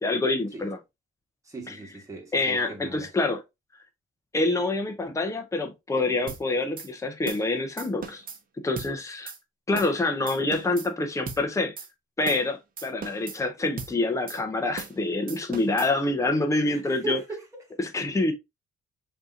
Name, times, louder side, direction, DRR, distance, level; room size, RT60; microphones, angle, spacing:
voice 1, 0.0-0.8 1.7-1.8 2.3-3.4 4.3-8.2 8.6-9.3 9.7-11.7 12.2-17.2 17.8-18.3, left 2 dB, 15° left, 0.9 m, -26 dB
voice 2, 1.4-3.1 16.7-17.7, right 3 dB, 15° right, 1.6 m, -38 dB
sound 1, 6.3-6.4 6.8-6.9 7.3-7.5 7.8-8.4 8.8-8.9 9.3-9.4 9.8-10.0 10.3-10.9 11.3-11.4 11.8-11.9 12.3-12.5 12.8-13.4 13.8-13.9 14.3-14.4 14.8-15.0 15.3-15.9, right 5 dB, 45° right, 0.9 m, -38 dB
5.3 x 2.9 x 2.6 m
cardioid pair, 90°, 20 cm